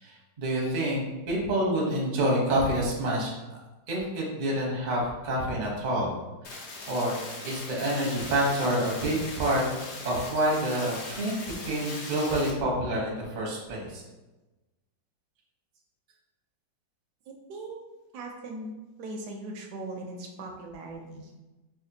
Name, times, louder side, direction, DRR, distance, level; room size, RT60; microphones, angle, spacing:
voice 1, 0.0-3.6 3.9-6.1 6.5-7.1 7.4-9.6 10.0-11.3 11.7-14.0, right 1 dB, 40° right, -3 dB, 0.6 m, -28 dB
sound 1, 6.4-12.5, left 2 dB, 75° left, 0.6 m, -40 dB
voice 2, 17.3-17.8 18.1-18.7 19.0-21.4, right 2 dB, 75° right, 1 dB, 1.0 m, -39 dB
4.9 x 2.2 x 2.7 m, 1.1 s
omnidirectional pair, 1.9 m